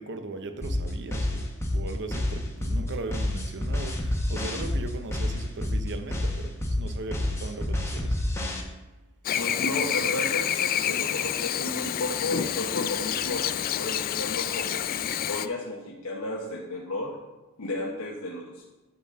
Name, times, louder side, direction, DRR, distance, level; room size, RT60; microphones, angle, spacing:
voice 1, 0.0-8.2, right 2 dB, 55° right, 6 dB, 0.8 m, -38 dB
sound 1, 0.6-8.6, left 1 dB, 10° left, 1.1 m, -28 dB
Chirp tweet / Buzz, 9.2-15.5, left 10 dB, 40° left, 0.3 m, -28 dB
voice 2, 9.4-17.2 17.6-18.6, left 2 dB, 85° left, -3 dB, 1.0 m, -33 dB
9.5 x 4.0 x 6.3 m, 1.1 s
head